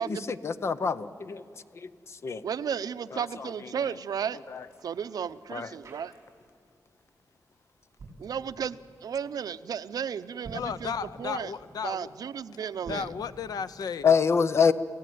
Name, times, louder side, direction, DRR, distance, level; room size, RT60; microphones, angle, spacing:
voice 1, 0.0-1.4 1.7-2.4 3.1-3.5 4.5-4.6 5.5-5.7 14.0-14.7, left 6 dB, 45° left, 0.7 m, -26 dB
voice 2, 2.4-4.4 4.8-6.1 8.2-8.8 9.0-10.9 11.2-11.5 11.8-13.1, right 7 dB, 75° right, 0.6 m, -33 dB
sound 1, 3.9-6.6 6.9-7.2 7.8-8.3 10.3-10.8 12.7-13.2, right 2 dB, 45° right, 6.3 m, -48 dB
voice 3, 10.5-12.1 12.9-14.1, left 6 dB, 75° left, 0.8 m, -34 dB
28.0 x 16.0 x 9.3 m
wide cardioid pair, 175°, 7 cm